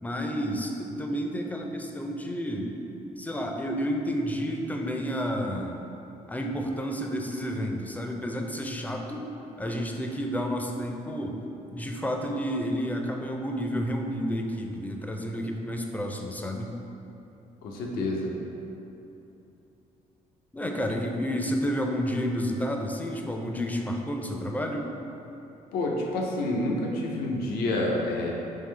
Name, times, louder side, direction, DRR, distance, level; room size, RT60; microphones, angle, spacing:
voice 1, 0.0-2.7 3.2-5.9 6.3-9.3 9.6-11.4 11.7-16.7 20.5-24.9, equal, 10° left, 2 dB, 0.4 m, -30 dB
voice 2, 17.6-18.3 25.7-28.3, left 2 dB, 85° left, -1 dB, 0.6 m, -28 dB
3.6 x 3.2 x 3.2 m, 3.0 s
supercardioid pair, 75°, 15 cm